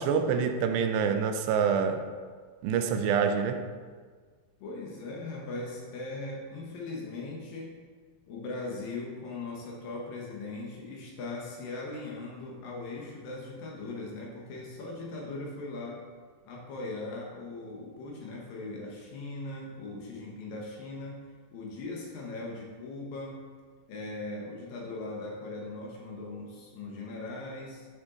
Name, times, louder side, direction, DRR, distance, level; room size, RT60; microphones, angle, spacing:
voice 1, 0.0-2.1 2.6-3.6, right 6 dB, 85° right, 7 dB, 2.7 m, -26 dB
voice 2, 4.6-7.8 8.3-16.1 16.4-21.2 21.5-23.4 23.9-27.9, left 2 dB, 65° left, -2 dB, 2.6 m, -39 dB
9.1 x 7.0 x 3.8 m, 1.5 s
omnidirectional pair, 4.9 m